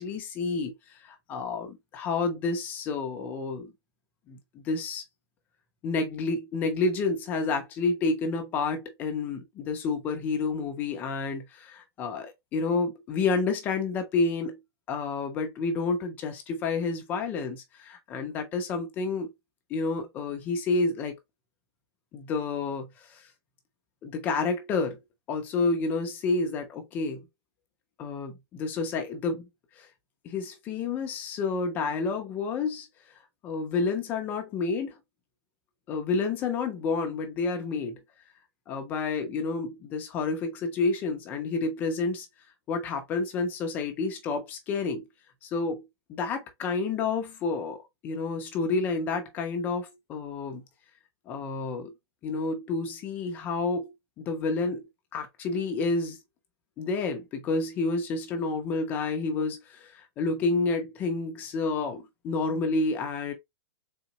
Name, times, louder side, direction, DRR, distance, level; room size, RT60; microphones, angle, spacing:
voice 1, 0.0-3.7 4.3-5.0 5.8-14.6 14.9-19.3 19.7-21.2 22.1-23.3 24.0-25.0 25.3-27.3 28.0-29.5 29.8-29.9 30.2-32.9 33.4-34.9 35.9-38.0 38.7-42.3 42.7-45.0 45.4-45.8 46.1-50.6 51.3-51.9 52.2-53.9 54.2-54.8 55.1-56.2 56.8-63.3, left 4 dB, 15° left, 0.4 m, -29 dB
3.8 x 3.5 x 2.9 m
hypercardioid pair, 175°, 14 cm